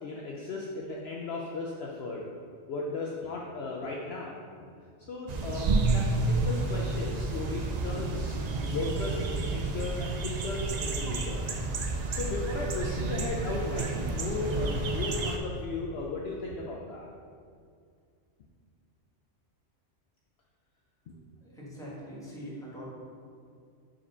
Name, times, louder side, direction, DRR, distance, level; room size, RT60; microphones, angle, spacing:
voice 1, 0.0-2.3 2.7-4.4 5.1-8.3 8.6-11.5 12.1-17.1 21.1-21.2, left 3 dB, 60° left, -2 dB, 0.8 m, -36 dB
sound 1, 5.3-15.4, right 3 dB, 65° right, 0.4 m, -30 dB
voice 2, 21.4-22.9, equal, 5° left, -7 dB, 1.4 m, -43 dB
4.9 x 4.3 x 5.3 m, 2.3 s
omnidirectional pair, 1.3 m